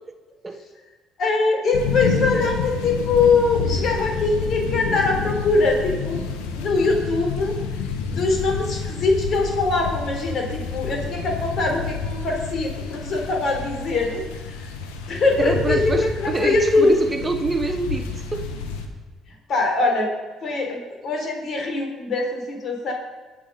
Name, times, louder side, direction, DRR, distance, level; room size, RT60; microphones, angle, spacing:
voice 1, 1.2-6.2 6.5-7.6 8.1-14.2 15.1-16.9 19.5-20.1 20.4-22.9, left 3 dB, 55° left, 1 dB, 3.8 m, -22 dB
sound 1, 1.7-18.9, left 5 dB, 85° left, 1.5 m, -29 dB
voice 2, 15.4-18.5, right 3 dB, 25° right, 7 dB, 1.1 m, -26 dB
20.5 x 6.8 x 5.4 m, 1.3 s
supercardioid pair, 65°, 0 cm